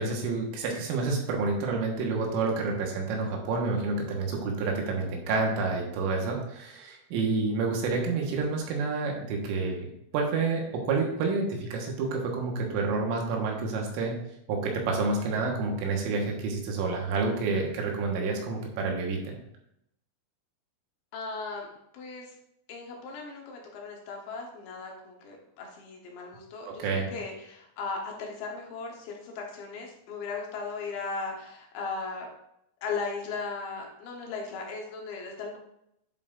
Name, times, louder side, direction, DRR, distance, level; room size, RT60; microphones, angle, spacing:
voice 1, 0.0-14.2 14.5-19.4 26.7-27.1, right 3 dB, 80° right, 0 dB, 3.9 m, -29 dB
voice 2, 21.1-21.7 21.9-22.3 22.7-32.3 32.8-35.6, left 4 dB, 70° left, 0 dB, 3.2 m, -37 dB
10.0 x 7.4 x 2.6 m, 0.79 s
omnidirectional pair, 5.7 m